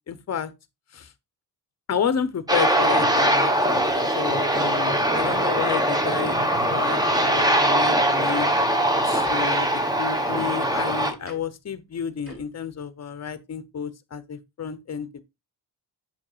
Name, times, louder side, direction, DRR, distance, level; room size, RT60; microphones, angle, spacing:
voice 1, 0.1-0.5 0.9-1.1 1.9-6.4 6.7-8.5 9.0-9.7 10.0-15.2, left 7 dB, 40° left, 0.7 m, -31 dB
Aircraft, 2.5-11.1, right 1 dB, 10° right, 0.9 m, -22 dB
Tick-tock, 5.2-5.4 6.2-6.4 7.2-7.4 8.2-8.4 9.2-9.4 10.2-10.4 11.2-11.4 12.2-12.4, equal, 35° right, 3.0 m, -42 dB
7.9 x 5.8 x 2.4 m
wide cardioid pair, 135°, 41 cm